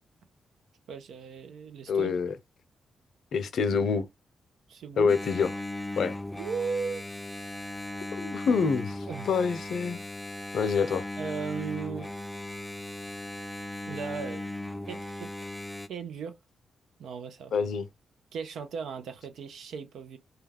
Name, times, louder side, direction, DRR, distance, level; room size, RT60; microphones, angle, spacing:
voice 1, 0.9-2.2 4.7-5.2 6.4-7.0 9.0-9.3 11.2-12.1 13.9-14.5 14.9-15.3 15.9-16.4 17.0-17.5 18.3-20.2, right 6 dB, 75° right, 0.5 m, -36 dB
voice 2, 1.9-2.3 3.3-4.1 5.0-5.5 6.0-6.2 8.1-10.0 10.5-11.1 17.5-17.9, left 5 dB, 70° left, 0.4 m, -26 dB
Engine, 5.1-15.9, left 1 dB, 10° left, 0.4 m, -37 dB
2.2 x 2.2 x 3.2 m
hypercardioid pair, 45°, 0 cm